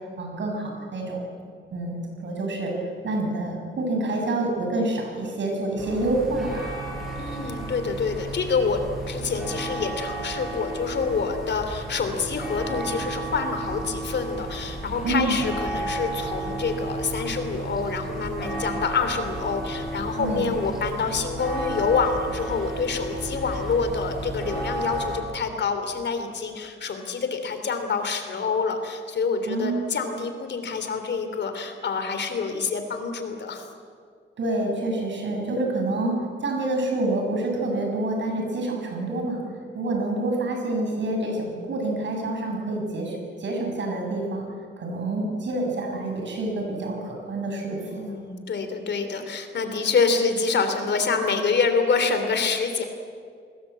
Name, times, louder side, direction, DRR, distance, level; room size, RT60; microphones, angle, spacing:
voice 1, 0.2-1.2 1.7-2.7 3.0-6.7 15.0-15.4 20.2-20.5 29.5-29.8 34.4-39.4 39.7-44.5 44.8-48.0, right 2 dB, 65° right, 1 dB, 7.2 m, -27 dB
sound 1, 5.8-25.2, right 2 dB, ahead, 7.6 m, -33 dB
voice 2, 7.2-33.7 47.8-52.8, left 5 dB, 60° left, 7 dB, 3.1 m, -27 dB
29.5 x 20.5 x 8.4 m, 2.2 s
wide cardioid pair, 180°, 20 cm